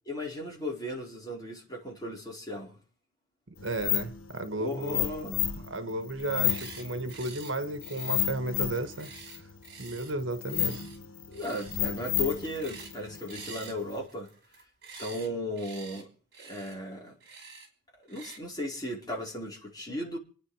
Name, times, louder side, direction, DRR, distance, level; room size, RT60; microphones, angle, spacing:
voice 1, 0.1-2.8 4.5-5.4 11.3-14.3 15.0-16.1 16.4-17.1 18.1-20.2, left 1 dB, 20° left, 4.5 m, -36 dB
sound 1, 3.6-14.1, left 11 dB, 90° left, 1.0 m, -33 dB
voice 2, 3.6-5.1 5.5-9.1 9.8-10.8, right 2 dB, 75° right, 1.5 m, -33 dB
sound 2, 6.3-6.8 7.1-7.5 7.8-10.1 10.5-11.0 11.3-11.8 12.1-13.0 13.3-15.3 15.5-16.0 16.3-16.8 17.2-17.7 18.1-18.4, right 5 dB, 50° right, 5.2 m, -47 dB
29.0 x 9.8 x 4.9 m
head